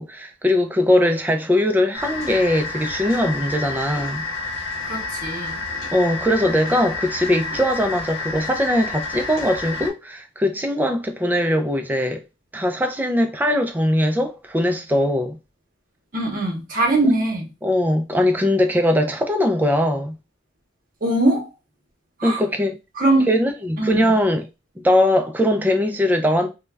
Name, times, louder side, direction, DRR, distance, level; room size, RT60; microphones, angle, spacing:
voice 1, 0.0-4.2 5.9-12.2 12.5-15.4 17.6-20.1 22.2-22.8 23.3-24.5 24.8-26.5, left 1 dB, 10° right, 0.3 m, -20 dB
sound 1, 1.9-9.9, left 3 dB, 85° left, 0.8 m, -30 dB
voice 2, 4.8-5.6 16.1-17.5 21.0-21.5 22.2-22.4 23.0-23.3 23.8-24.0, right 2 dB, 45° right, 0.8 m, -21 dB
2.3 x 2.1 x 3.2 m
head